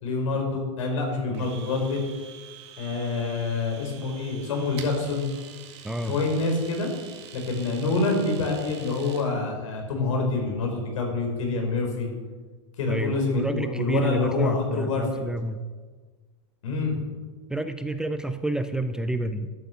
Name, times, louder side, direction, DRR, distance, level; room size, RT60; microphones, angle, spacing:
voice 1, 0.0-2.0 2.8-5.3 6.1-6.9 7.3-12.1 12.8-15.2 16.6-17.0, left 3 dB, 80° left, 2 dB, 4.5 m, -26 dB
Domestic sounds home sounds, 1.3-9.3, right 8 dB, 60° right, 2.0 m, -45 dB
voice 2, 5.8-6.2 12.9-15.6 17.5-19.5, right 2 dB, 5° right, 9 dB, 0.4 m, -29 dB
12.5 x 8.0 x 7.0 m, 1.4 s
supercardioid pair, 150°, 16 cm